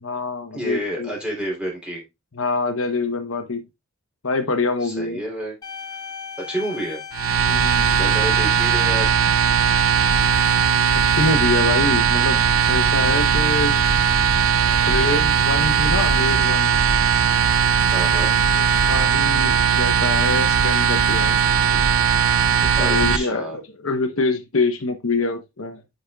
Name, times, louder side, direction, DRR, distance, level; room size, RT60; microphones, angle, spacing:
voice 1, 0.0-1.1 2.4-3.6 4.2-5.2 7.5-7.9 10.9-12.4 12.7-13.8 14.9-16.8 18.9-21.4 21.7-21.8 22.6-25.8, left 3 dB, 65° left, 1.0 m, -25 dB
voice 2, 0.5-2.0 4.8-5.5 6.5-7.0 7.7-9.2 14.7-15.2 17.9-18.3 22.7-23.6, right 1 dB, 5° right, 3.2 m, -30 dB
sound 1, 5.6-10.7, left 7 dB, 15° left, 1.3 m, -37 dB
sound 2, 7.1-23.2, right 7 dB, 70° right, 0.6 m, -18 dB
9.9 x 5.4 x 2.3 m
head